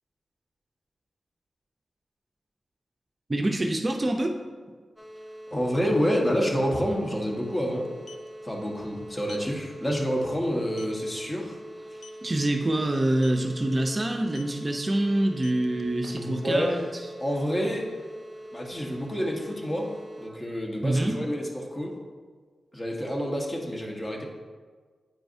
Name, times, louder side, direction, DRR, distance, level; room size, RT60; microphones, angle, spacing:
voice 1, 3.3-4.4 12.2-16.9 20.8-21.2, right 1 dB, 35° right, 3 dB, 0.6 m, -26 dB
sound 1, 5.0-20.3, right 1 dB, 10° left, 0.7 m, -43 dB
voice 2, 5.5-7.9 8.4-11.6 11.9-12.0 16.2-16.9 17.2-17.9 18.5-21.9 22.7-24.2, equal, 30° left, -1 dB, 1.4 m, -28 dB
sound 2, 6.2-6.3 6.6-6.8 7.8-8.3 9.2-9.5 9.9-10.1 10.4-10.5 10.8-11.0 11.9-12.3 13.1-13.4 14.3-14.6 15.2-16.5, left 5 dB, 70° left, 0.4 m, -48 dB
9.0 x 4.6 x 2.7 m, 1.5 s
cardioid pair, 50°, 0 cm